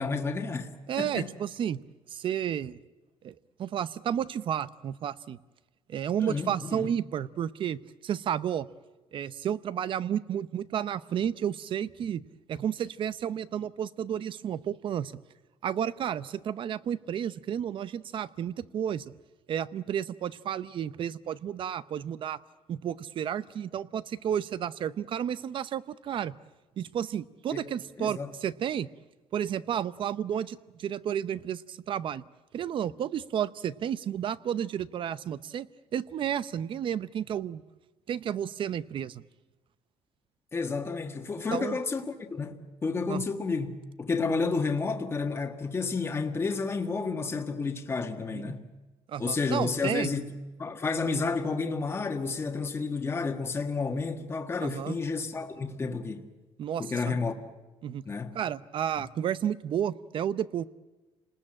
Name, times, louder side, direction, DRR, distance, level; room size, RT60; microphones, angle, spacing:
voice 1, 0.0-0.7 1.0-1.3 6.2-6.9 27.5-27.7 28.0-28.3 40.5-43.7 44.0-48.7 49.2-50.3 50.6-56.3 56.8-57.3 58.0-58.4, left 4 dB, 25° left, 1.6 m, -31 dB
voice 2, 0.9-1.8 2.1-2.8 3.2-3.3 3.6-5.4 5.9-8.7 9.1-15.1 15.6-19.0 19.5-22.4 22.7-26.4 26.8-28.9 29.3-32.2 32.5-35.7 35.9-37.6 38.1-39.2 41.5-41.8 43.1-43.2 48.3-48.5 49.1-50.1 54.6-54.9 56.6-57.2 57.8-58.0 58.3-60.6, right 9 dB, 50° right, 0.7 m, -32 dB
29.0 x 19.5 x 8.8 m
cardioid pair, 145°, 11 cm